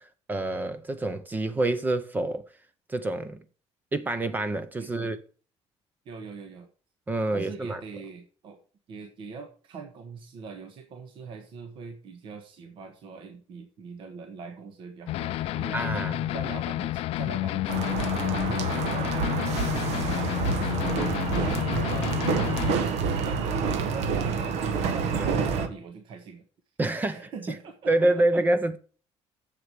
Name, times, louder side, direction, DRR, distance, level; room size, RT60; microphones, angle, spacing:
voice 1, 0.0-2.5 2.9-3.4 3.9-5.2 7.1-7.8 15.7-16.3 25.1-25.3 26.8-27.3 27.9-28.8, right 2 dB, 15° right, 0.6 m, -27 dB
voice 2, 4.8-5.1 6.0-6.7 7.3-8.6 8.9-15.8 16.3-19.3 19.8-21.0 21.3-26.4 27.1-28.4, right 5 dB, 50° right, 1.3 m, -42 dB
sound 1, 15.1-22.7, left 16 dB, 60° left, 0.4 m, -30 dB
sound 2, 17.7-25.7, right 5 dB, 80° right, 1.4 m, -28 dB
7.8 x 7.3 x 6.6 m
cardioid pair, 175°, 11 cm